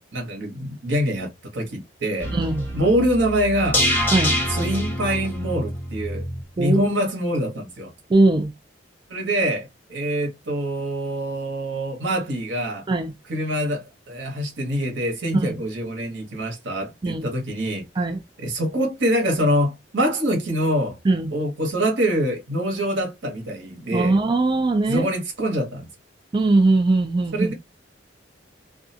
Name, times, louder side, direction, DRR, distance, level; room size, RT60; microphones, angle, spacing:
voice 1, 0.1-2.3 2.7-3.8 4.5-6.3 6.6-7.9 9.1-12.9 13.3-17.8 18.4-21.0 21.3-24.2 24.9-25.9 27.3-27.5, equal, 80° right, 1.0 m, -25 dB
sound 1, 2.2-6.4 6.7-6.8, equal, 10° left, 1.0 m, -26 dB
voice 2, 2.3-2.7 4.1-4.4 6.6-6.9 8.1-8.5 12.9-13.1 15.3-15.6 17.0-17.3 18.0-18.2 21.0-21.3 23.9-25.1 26.3-27.5, right 2 dB, 25° right, 0.3 m, -20 dB
2.4 x 2.2 x 2.6 m
head